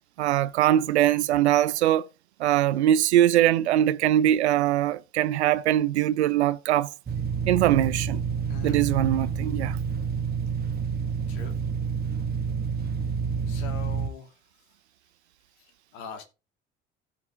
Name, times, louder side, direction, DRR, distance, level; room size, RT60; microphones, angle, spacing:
voice 1, 0.2-2.1 2.4-6.9 7.5-8.2 8.6-9.8, right 12 dB, 75° right, 0.7 m, -22 dB
sound 1, 7.1-14.1, right 6 dB, 30° right, 1.6 m, -29 dB
voice 2, 13.5-14.3 15.9-16.2, left 6 dB, 65° left, 2.8 m, -41 dB
16.0 x 5.7 x 3.6 m
figure-of-eight pair, 55°, 33 cm